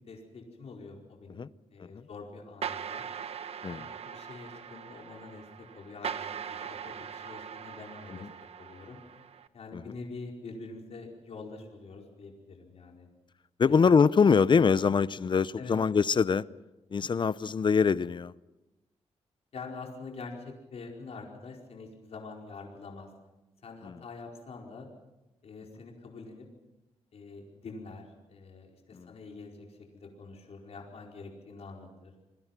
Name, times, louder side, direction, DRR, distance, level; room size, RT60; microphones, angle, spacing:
voice 1, 0.0-1.4 1.7-3.0 3.6-5.5 5.7-8.3 8.6-9.0 9.5-13.1 13.6-13.7 15.6-15.7 19.5-23.1 23.6-24.9 25.4-26.5 27.1-32.1, left 4 dB, 60° left, 4.8 m, -45 dB
sound 1, 2.6-9.5, right 7 dB, 60° right, 1.2 m, -41 dB
voice 2, 13.6-16.4 16.9-18.3 23.8-24.0 28.9-29.1, left 5 dB, 40° left, 0.7 m, -24 dB
28.0 x 21.0 x 6.0 m
cardioid pair, 100°, 12 cm